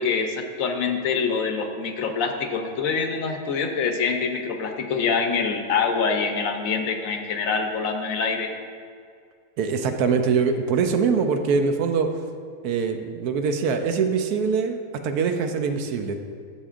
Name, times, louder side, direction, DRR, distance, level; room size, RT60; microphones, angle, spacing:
voice 1, 0.0-8.5, left 5 dB, 70° left, 5 dB, 1.0 m, -25 dB
voice 2, 9.6-12.1 12.6-16.2, right 5 dB, 80° right, 6 dB, 1.2 m, -23 dB
11.0 x 7.3 x 2.4 m, 2.1 s
omnidirectional pair, 1.6 m